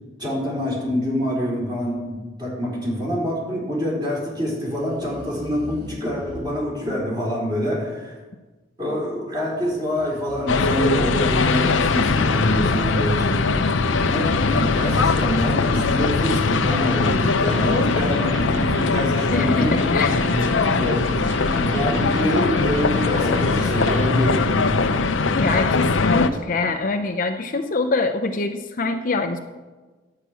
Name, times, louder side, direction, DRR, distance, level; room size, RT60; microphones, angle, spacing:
voice 1, 0.2-8.2 8.8-19.7 20.8-21.0 21.5-25.0, equal, 25° right, -4 dB, 3.9 m, -26 dB
sound 1, 4.7-6.9 9.6-11.8 13.5-15.3 18.1-19.7, right 1 dB, 60° right, 3.5 m, -39 dB
sound 2, 10.5-26.3, left 4 dB, 85° left, 0.6 m, -21 dB
Electric guitar, 17.0-24.3, equal, 80° right, 2.2 m, -30 dB
voice 2, 19.3-20.3 25.4-29.4, left 3 dB, 45° left, 7 dB, 0.6 m, -24 dB
10.0 x 5.8 x 8.2 m, 1.3 s
head